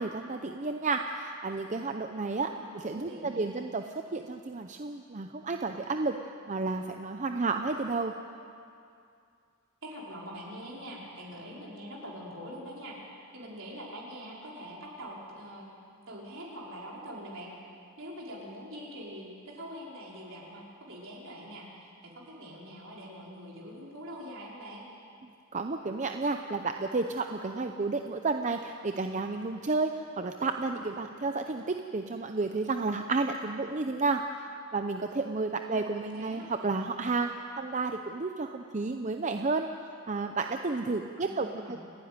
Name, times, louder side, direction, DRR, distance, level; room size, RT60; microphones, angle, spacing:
voice 1, 0.0-2.5 2.8-6.2 6.5-8.1 25.2-34.5 34.7-39.7 40.1-41.8, right 3 dB, 35° right, 6 dB, 0.7 m, -31 dB
voice 2, 2.4-3.7 9.8-13.0 13.3-15.7 16.1-17.5 18.0-24.9 35.7-35.9 36.1-36.5 41.2-41.8, equal, 65° right, -4 dB, 5.1 m, -44 dB
29.5 x 10.0 x 9.6 m, 2.4 s
head